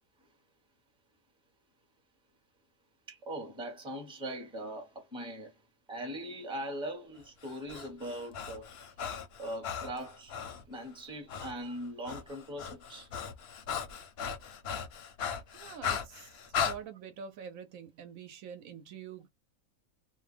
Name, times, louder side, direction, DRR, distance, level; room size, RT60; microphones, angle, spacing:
voice 1, 3.1-5.6 5.9-8.7 9.4-10.4 10.7-13.1, right 1 dB, 5° right, 0.7 m, -40 dB
Breathing, 7.4-10.6 11.3-11.5 11.8-16.8, left 7 dB, 60° left, 0.7 m, -37 dB
voice 2, 15.5-16.3 16.6-19.3, right 7 dB, 75° right, 1.0 m, -45 dB
2.6 x 2.1 x 3.2 m
omnidirectional pair, 1.5 m